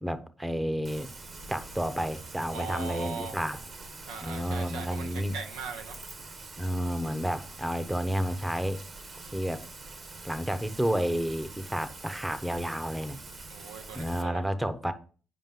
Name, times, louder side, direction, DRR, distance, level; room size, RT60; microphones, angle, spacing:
voice 1, 0.0-1.1 1.5-3.6 4.2-5.3 6.6-8.8 9.3-9.6 10.2-13.2 13.9-14.9, equal, 10° right, 0.9 m, -31 dB
Rain, 0.8-14.2, right 3 dB, 45° right, 1.2 m, -45 dB
voice 2, 2.5-3.4 4.1-6.0 13.5-14.4, right 5 dB, 85° right, 0.8 m, -39 dB
7.4 x 5.0 x 3.7 m
supercardioid pair, 60°, 0 cm